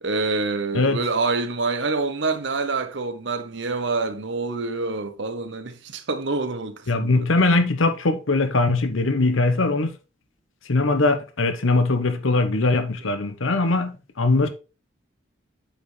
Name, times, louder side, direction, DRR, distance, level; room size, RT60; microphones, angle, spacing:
voice 1, 0.0-7.3, right 3 dB, 65° right, 0.9 m, -26 dB
voice 2, 6.9-9.9 10.7-14.5, left 2 dB, 85° left, 1.0 m, -21 dB
8.6 x 5.5 x 3.2 m
head